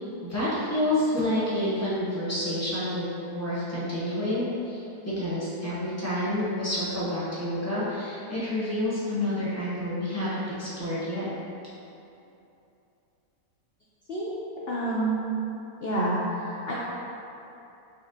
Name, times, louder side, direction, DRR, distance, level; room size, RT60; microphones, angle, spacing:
voice 1, 0.2-11.3, left 1 dB, 15° left, -10 dB, 0.6 m, -29 dB
voice 2, 14.7-15.2 15.8-16.7, right 1 dB, 70° left, -7 dB, 0.5 m, -28 dB
4.1 x 3.4 x 2.5 m, 2.8 s
omnidirectional pair, 1.6 m